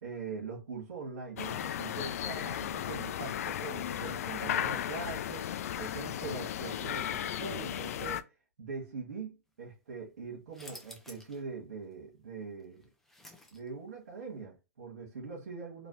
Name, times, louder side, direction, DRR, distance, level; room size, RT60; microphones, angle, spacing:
voice 1, 0.0-8.3 8.6-12.9 13.5-15.9, right 4 dB, 80° right, 1.3 m, -42 dB
sound 1, 1.4-8.2, left 10 dB, 70° left, 0.3 m, -35 dB
sound 2, 10.5-11.4 11.8-11.9 12.6-13.9, left 1 dB, 5° left, 0.7 m, -51 dB
3.2 x 2.7 x 2.8 m
hypercardioid pair, 120°, 8 cm